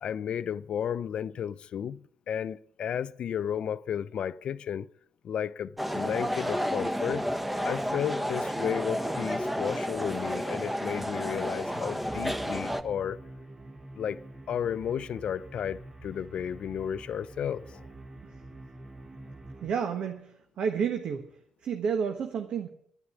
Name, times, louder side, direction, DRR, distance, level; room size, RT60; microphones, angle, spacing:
voice 1, 0.0-4.9 5.2-7.3 7.6-13.2 14.0-14.2 14.5-17.9, left 8 dB, 60° left, 0.5 m, -33 dB
sound 1, 5.8-12.8, equal, 5° right, 1.1 m, -31 dB
sound 2, 12.0-19.7, right 2 dB, 25° right, 1.4 m, -47 dB
voice 2, 19.6-21.3 21.6-22.7, right 6 dB, 65° right, 1.4 m, -30 dB
11.0 x 9.6 x 9.9 m
supercardioid pair, 70°, 2 cm